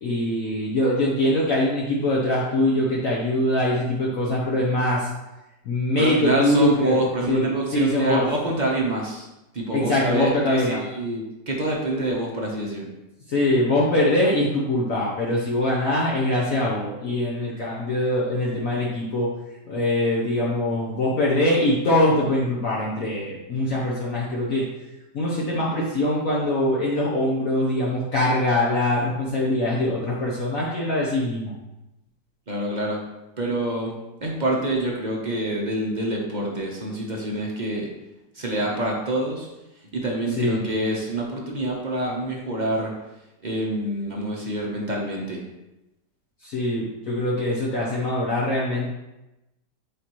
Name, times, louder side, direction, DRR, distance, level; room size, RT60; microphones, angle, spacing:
voice 1, 0.0-5.1 5.6-7.0 7.3-7.4 7.7-8.3 9.7-10.8 13.3-19.3 19.7-24.7 25.1-31.5 40.4-40.6 46.4-48.9, left 1 dB, 55° left, -4 dB, 1.2 m, -23 dB
voice 2, 6.0-9.3 9.5-12.9 32.5-33.0 33.4-33.9 34.2-37.9 38.3-39.5 39.9-42.9 43.4-45.4, right 1 dB, 35° right, -2 dB, 0.8 m, -26 dB
8.5 x 4.2 x 3.0 m, 0.97 s
omnidirectional pair, 1.9 m